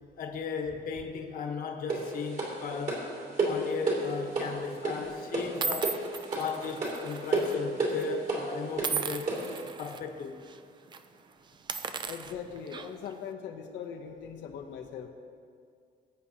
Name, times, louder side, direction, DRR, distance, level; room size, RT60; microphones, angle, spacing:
voice 1, 0.2-3.0 3.4-6.0 6.3-9.3 9.8-10.4, left 5 dB, 50° left, 3 dB, 1.2 m, -36 dB
sound 1, 1.9-9.6, right 2 dB, 45° right, 2.8 m, -32 dB
sound 2, 3.9-4.2 5.0-5.1 5.6-7.6 7.8-8.0 8.8-10.0 10.4-10.6 10.9-11.0 11.5-13.1, right 5 dB, 25° right, 0.4 m, -36 dB
voice 2, 12.0-15.1, left 7 dB, 90° left, 1 dB, 0.9 m, -40 dB
20.5 x 8.6 x 2.9 m, 2.2 s
cardioid pair, 175°, 18 cm